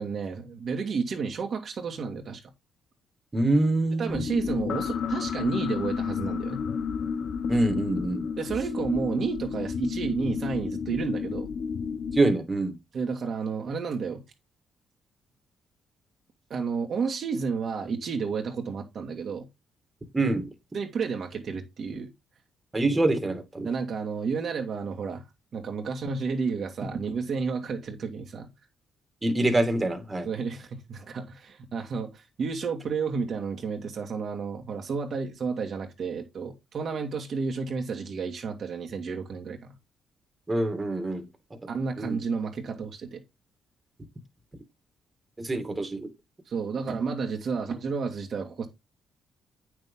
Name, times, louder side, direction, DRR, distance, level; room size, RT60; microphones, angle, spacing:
voice 1, 0.0-2.4 4.0-6.6 8.4-11.5 12.9-14.2 16.5-19.5 20.7-22.1 23.6-25.2 25.5-28.5 30.2-39.7 41.7-43.2 46.5-48.7, right 5 dB, 55° right, 2.1 m, -31 dB
voice 2, 3.3-4.3 7.5-8.2 12.1-12.7 20.1-20.5 22.7-23.7 29.2-30.3 40.5-41.3 42.0-42.2 45.4-46.1, right 2 dB, 20° right, 2.2 m, -25 dB
sound 1, 4.1-12.2, left 6 dB, 60° left, 1.0 m, -31 dB
8.8 x 6.5 x 3.7 m
cardioid pair, 90°, 0 cm